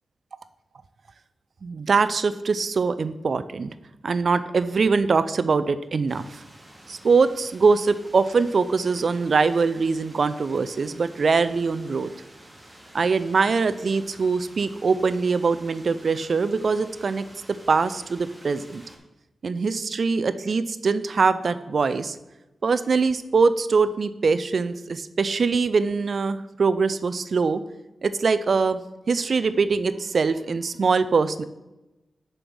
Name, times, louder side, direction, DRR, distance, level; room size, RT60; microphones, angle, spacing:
voice 1, 1.6-3.7 4.0-6.4 6.9-12.1 12.9-18.8 19.4-22.2 22.6-27.6 28.0-28.8 29.1-31.4, right 4 dB, 65° right, 13 dB, 0.4 m, -23 dB
sound 1, 6.1-19.0, right 1 dB, 20° right, 2.2 m, -49 dB
6.7 x 5.5 x 6.2 m, 0.99 s
cardioid pair, 45°, 0 cm